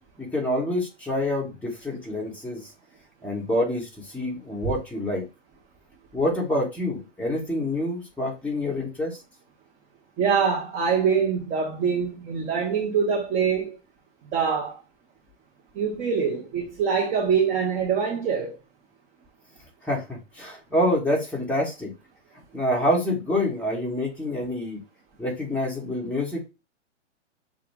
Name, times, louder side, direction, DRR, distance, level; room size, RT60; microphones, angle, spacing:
voice 1, 0.2-2.7 3.2-5.2 6.1-9.2 19.8-21.9 22.5-24.8 25.2-26.4, left 1 dB, 5° left, 1.5 m, -27 dB
voice 2, 10.2-13.8 14.3-14.8 15.7-18.6, right 6 dB, 20° right, 0.7 m, -24 dB
6.6 x 2.3 x 3.5 m
hypercardioid pair, 125°, 36 cm